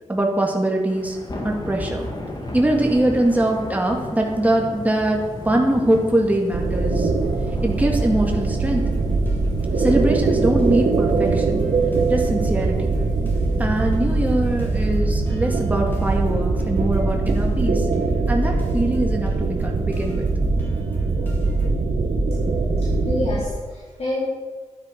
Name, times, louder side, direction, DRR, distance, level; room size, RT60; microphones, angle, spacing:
voice 1, 0.1-1.2 1.4-2.1 2.5-7.1 7.6-8.8 9.8-11.6 12.1-12.9 13.6-17.9 18.3-20.3, right 1 dB, 10° right, 0 dB, 2.0 m, -22 dB
Thunder / Rain, 0.9-14.9, left 1 dB, 35° left, 2.1 m, -36 dB
sound 1, 6.5-23.4, right 3 dB, 70° right, 1.5 m, -22 dB
sound 2, 7.7-21.7, right 1 dB, 15° left, 2.8 m, -40 dB
voice 2, 22.8-24.3, left 2 dB, 55° left, -7 dB, 3.8 m, -27 dB
12.0 x 9.9 x 5.3 m, 1.4 s
wide cardioid pair, 130°, 13 cm